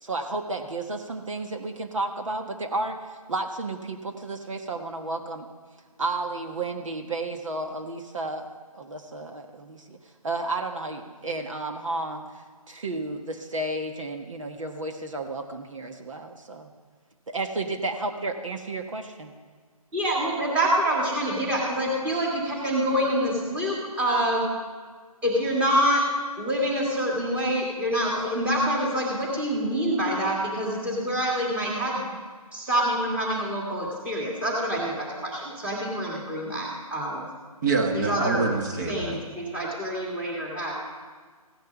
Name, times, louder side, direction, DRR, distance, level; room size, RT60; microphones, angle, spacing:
voice 1, 0.0-3.0 3.3-5.5 6.0-8.5 8.7-10.0 10.2-12.2 12.7-16.7 17.3-19.3, right 2 dB, 55° right, 4 dB, 1.3 m, -32 dB
voice 2, 19.9-24.5 25.2-32.1 32.5-37.3 37.9-38.5 38.9-40.7, equal, 5° right, -3 dB, 1.9 m, -26 dB
voice 3, 37.6-39.2, right 4 dB, 30° right, 3 dB, 1.7 m, -26 dB
15.5 x 10.5 x 5.9 m, 1.5 s
figure-of-eight pair, 155°, 19 cm